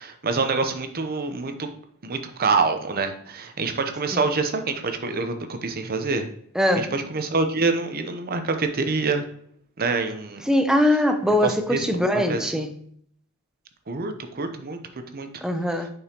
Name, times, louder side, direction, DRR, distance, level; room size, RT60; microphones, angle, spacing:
voice 1, 0.0-1.7 2.0-6.3 6.8-9.2 9.8-10.4 11.4-11.9 12.1-12.7 13.9-14.8 15.1-15.3, right 4 dB, 45° right, 7 dB, 0.8 m, -26 dB
voice 2, 6.5-6.9 10.5-12.7 15.4-15.9, left 1 dB, 5° right, 6 dB, 0.7 m, -22 dB
6.8 x 5.4 x 2.9 m, 0.65 s
head